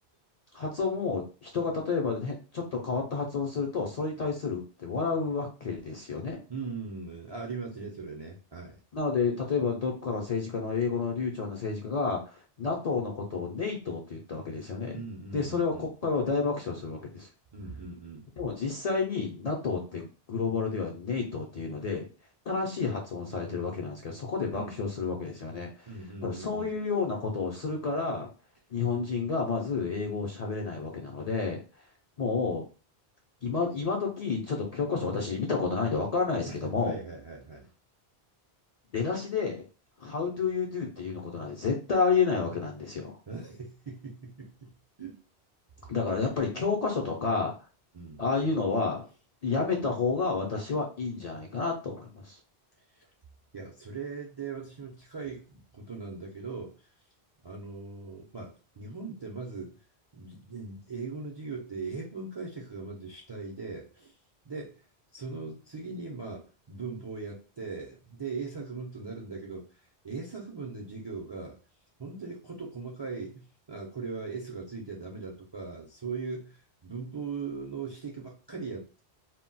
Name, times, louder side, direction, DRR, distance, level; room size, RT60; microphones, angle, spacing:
voice 1, 0.5-6.4 8.9-15.0 15.3-17.3 18.4-22.1 22.5-28.3 28.7-31.9 32.2-32.6 33.4-37.0 38.9-39.6 40.0-43.2 45.9-47.7 48.2-49.1 49.4-52.4, left 4 dB, 50° left, 0 dB, 0.5 m, -30 dB
voice 2, 6.5-8.8 14.9-15.9 17.5-18.3 24.5-24.8 25.9-26.7 36.4-37.7 43.3-44.7 45.0-45.2 45.8-45.9 47.9-48.2 52.9-53.1 53.5-56.9 57.4-59.7 60.1-64.1 64.4-64.8 65.1-69.7 70.0-71.6 72.0-79.0, right 4 dB, 45° right, -1 dB, 0.3 m, -39 dB
2.1 x 2.1 x 3.8 m, 0.34 s
omnidirectional pair, 1.1 m